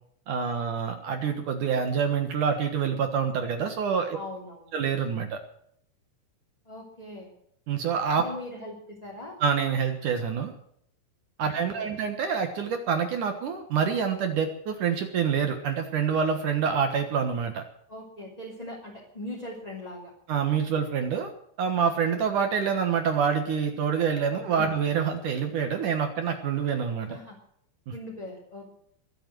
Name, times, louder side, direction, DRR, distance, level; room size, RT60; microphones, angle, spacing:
voice 1, 0.3-4.2 4.7-5.4 7.7-8.2 9.4-10.5 11.4-17.6 20.3-21.3 21.6-27.1 27.9-28.0, right 6 dB, 60° right, 6 dB, 2.3 m, -26 dB
voice 2, 4.1-4.7 6.6-7.3 8.1-9.4 11.4-11.9 17.9-20.1 24.3-24.7 27.1-27.4 27.9-28.7, left 1 dB, 10° left, -4 dB, 2.2 m, -40 dB
22.5 x 8.0 x 7.7 m, 0.68 s
omnidirectional pair, 5.1 m